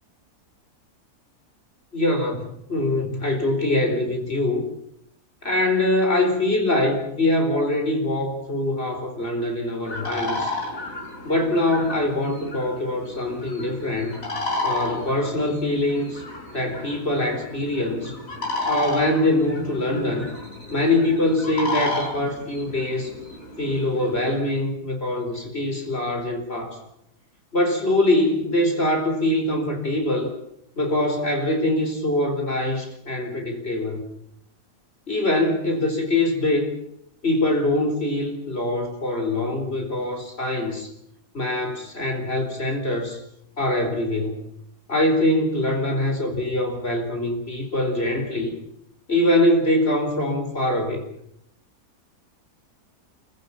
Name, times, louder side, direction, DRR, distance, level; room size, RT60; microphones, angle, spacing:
voice 1, 1.9-4.6 5.4-10.5 11.2-14.2 14.6-16.2 16.5-18.2 18.7-20.3 20.7-23.1 23.6-26.8 27.5-30.3 30.8-34.0 35.1-36.7 37.2-40.9 41.3-43.2 43.6-44.4 44.9-48.5 49.1-51.0, left 1 dB, 40° left, 4 dB, 4.6 m, -23 dB
sound 1, 9.9-24.4, left 2 dB, 55° left, 7.0 m, -32 dB
28.0 x 14.5 x 8.8 m, 0.77 s
omnidirectional pair, 1.7 m